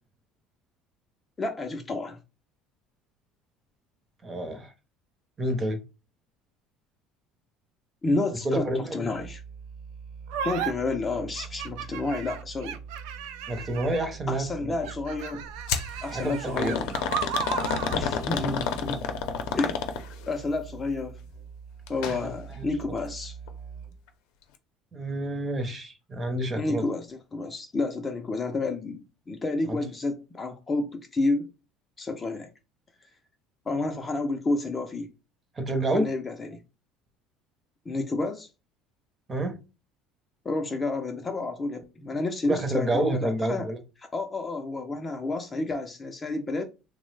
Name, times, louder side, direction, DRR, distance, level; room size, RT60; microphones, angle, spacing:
voice 1, 1.4-2.2 8.0-9.4 10.4-12.8 14.3-15.4 16.0-17.0 17.9-19.0 19.5-19.8 20.3-21.2 21.9-23.4 26.5-29.0 29.3-31.5 32.0-32.5 33.7-35.1 35.9-36.6 37.9-38.5 40.4-43.7 44.1-46.6, left 2 dB, 20° left, 0.4 m, -30 dB
voice 2, 4.2-4.7 5.4-5.8 8.4-9.3 13.5-14.7 16.1-16.8 22.0-22.2 22.5-22.7 24.9-26.8 29.7-29.8 35.6-36.1 39.3-39.6 42.5-43.8, right 1 dB, 20° right, 0.7 m, -29 dB
Musical instrument, 9.1-24.1, right 6 dB, 55° right, 1.0 m, -44 dB
sound 1, 10.3-10.7 11.4-14.2 14.8-18.0, right 8 dB, 80° right, 0.4 m, -35 dB
sound 2, 15.7-15.9 16.6-20.3 21.9-22.2 22.5-22.6 23.5-23.6, left 7 dB, 75° left, 0.5 m, -29 dB
3.0 x 2.0 x 3.2 m
cardioid pair, 150°, 0 cm